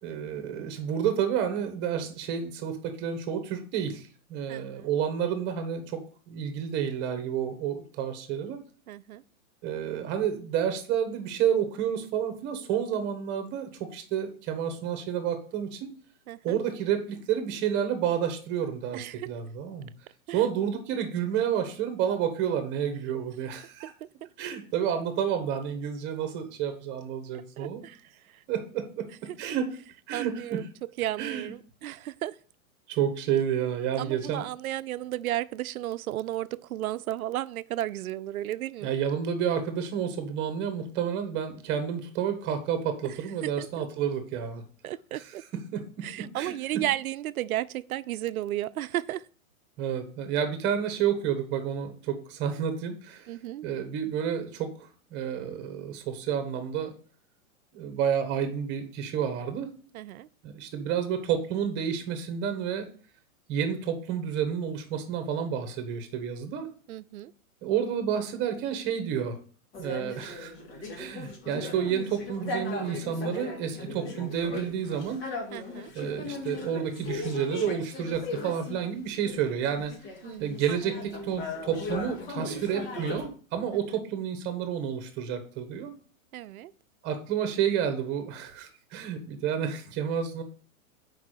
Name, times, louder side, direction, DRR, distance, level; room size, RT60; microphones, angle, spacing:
voice 1, 0.0-6.0 6.3-8.6 9.6-15.9 16.4-19.9 20.3-23.9 24.4-27.8 28.5-29.7 30.1-30.6 31.2-31.5 32.9-34.4 38.8-44.6 45.1-46.8 49.8-53.3 53.6-54.7 55.1-56.9 57.7-59.7 60.4-62.9 63.5-66.7 67.6-69.4 69.8-70.5 71.0-75.2 75.9-79.9 80.4-85.9 87.0-90.4, right 8 dB, 25° right, 1.3 m, -30 dB
voice 2, 4.5-4.9 8.9-9.2 16.3-16.6 18.9-19.3 20.3-20.4 23.8-24.3 27.6-28.0 28.3-28.4 30.1-32.4 34.0-38.9 43.0-43.1 43.4-43.7 44.8-45.4 46.0-49.2 53.3-53.7 59.9-60.3 66.9-67.3 75.5-75.9 80.2-80.5 86.3-86.7, right 14 dB, 85° right, 0.6 m, -34 dB
sound 1, 69.7-78.8 79.2-83.3, left 2 dB, 45° left, 2.1 m, -37 dB
5.9 x 5.0 x 6.5 m
hypercardioid pair, 155°, 42 cm